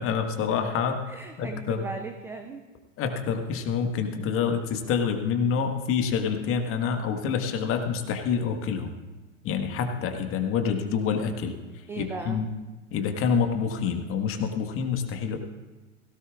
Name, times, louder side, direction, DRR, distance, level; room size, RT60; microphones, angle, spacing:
voice 1, 0.0-1.0 1.4-1.9 3.0-8.9 9.4-11.6 12.0-12.5 12.9-15.4, left 6 dB, 35° left, 5 dB, 1.6 m, -27 dB
voice 2, 1.1-2.6 11.9-12.4, right 4 dB, 5° right, 5 dB, 0.3 m, -37 dB
17.0 x 17.0 x 2.5 m, 1.2 s
hypercardioid pair, 95°, 38 cm